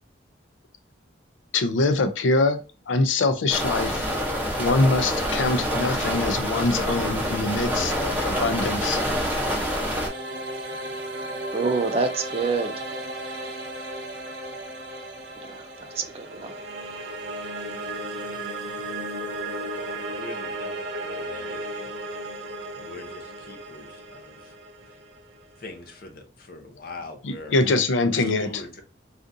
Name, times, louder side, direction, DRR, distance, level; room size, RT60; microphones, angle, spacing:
voice 1, 1.5-2.6 2.9-4.1 4.6-9.0 27.2-28.6, left 3 dB, 90° left, 0.5 m, -23 dB
sound 1, 3.5-10.1, equal, 10° right, 0.8 m, -26 dB
sound 2, 8.9-25.9, right 1 dB, 70° right, 0.6 m, -35 dB
voice 2, 11.5-12.7 15.4-16.5, right 4 dB, 30° right, 0.4 m, -27 dB
voice 3, 19.7-21.9 22.7-24.5 25.6-27.6 28.0-28.8, left 2 dB, 50° left, 0.7 m, -43 dB
3.7 x 2.5 x 2.6 m
head